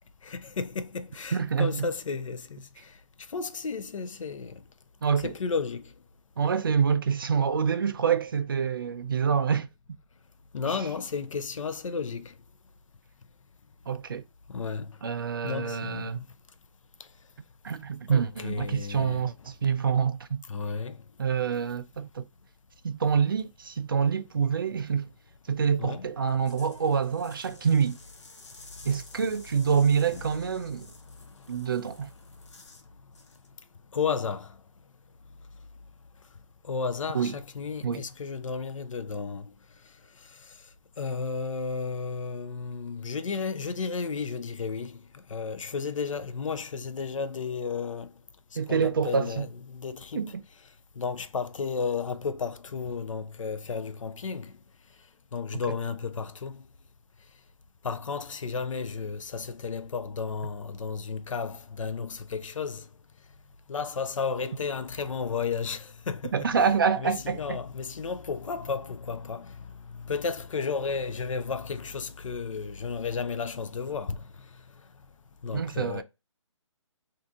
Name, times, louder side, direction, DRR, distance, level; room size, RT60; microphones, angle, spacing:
voice 1, 0.2-2.6 3.3-4.5 5.2-5.8 10.5-12.3 14.5-14.9 15.4-16.2 18.1-19.2 20.5-21.0 25.8-26.1 30.1-30.2 33.9-34.5 36.7-39.5 41.0-44.9 45.3-48.1 48.7-50.2 51.0-54.5 55.3-56.6 57.8-62.8 63.7-66.3 67.0-69.5 70.1-74.2 75.4-76.0, left 5 dB, 80° left, 0.5 m, -33 dB
voice 2, 1.3-1.9 5.0-5.3 6.4-9.7 13.9-14.2 15.0-16.2 17.6-20.4 21.2-22.3 22.8-25.1 25.5-28.0 28.8-30.9 31.5-32.1 37.1-37.3 37.8-38.1 48.6-49.5 50.2-50.4 66.3-67.6 75.5-76.0, right 6 dB, 45° right, 0.4 m, -26 dB
sound 1, 26.2-32.9 33.1-33.5, left 3 dB, 65° left, 1.0 m, -53 dB
2.7 x 2.5 x 3.5 m
hypercardioid pair, 170°, 16 cm